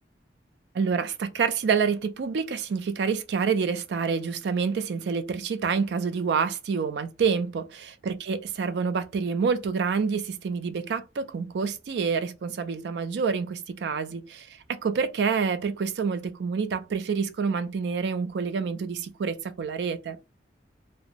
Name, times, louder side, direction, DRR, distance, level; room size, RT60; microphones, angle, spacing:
voice 1, 0.7-20.2, right 5 dB, 70° right, 0.4 m, -27 dB
2.5 x 2.0 x 2.8 m
head